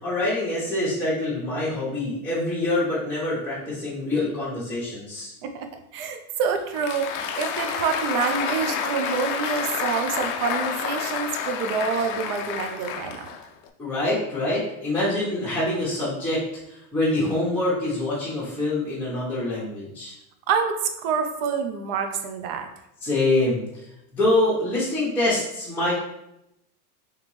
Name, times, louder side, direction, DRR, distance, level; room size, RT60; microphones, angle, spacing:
voice 1, 0.0-5.3 13.8-16.4 16.7-20.1 23.0-23.8 24.1-25.9, left 2 dB, 5° left, -11 dB, 1.1 m, -25 dB
voice 2, 5.9-13.3 20.5-22.7, right 6 dB, 50° right, 6 dB, 0.6 m, -27 dB
Applause, 6.6-13.7, left 7 dB, 45° left, 0.4 m, -29 dB
3.3 x 3.1 x 3.2 m, 0.84 s
supercardioid pair, 120°, 45 cm